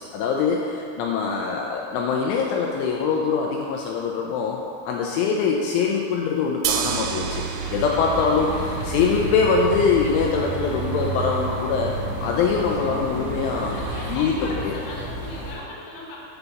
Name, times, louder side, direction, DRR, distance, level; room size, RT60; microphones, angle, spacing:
voice 1, 0.1-13.8 14.1-14.8, left 5 dB, 80° left, 0 dB, 3.0 m, -23 dB
sound 1, 6.6-12.7, right 9 dB, 85° right, 2.7 m, -33 dB
sound 2, 6.9-14.1, right 6 dB, 65° right, 1.9 m, -32 dB
sound 3, 7.8-15.5, left 1 dB, 40° left, 2.6 m, -34 dB
voice 2, 13.7-16.2, left 2 dB, 60° left, -5 dB, 2.3 m, -39 dB
11.0 x 4.0 x 7.0 m, 2.4 s
omnidirectional pair, 5.9 m